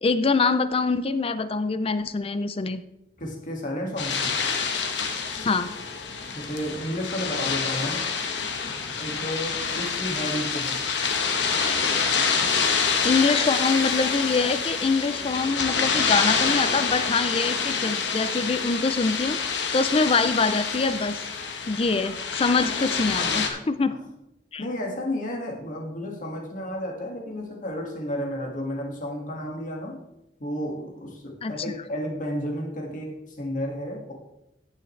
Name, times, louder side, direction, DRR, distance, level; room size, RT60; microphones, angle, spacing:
voice 1, 0.0-2.8 5.4-5.7 13.0-21.2 21.7-24.0 24.5-24.6 31.4-31.5, left 4 dB, 35° left, 12 dB, 0.5 m, -24 dB
voice 2, 3.2-4.4 6.4-8.0 9.0-10.8 23.1-23.5 24.6-30.0 30.4-34.1, equal, 50° left, 0 dB, 2.0 m, -32 dB
sound 1, 4.0-23.5, left 5 dB, 85° left, 1.2 m, -27 dB
16.0 x 6.5 x 3.3 m, 0.86 s
head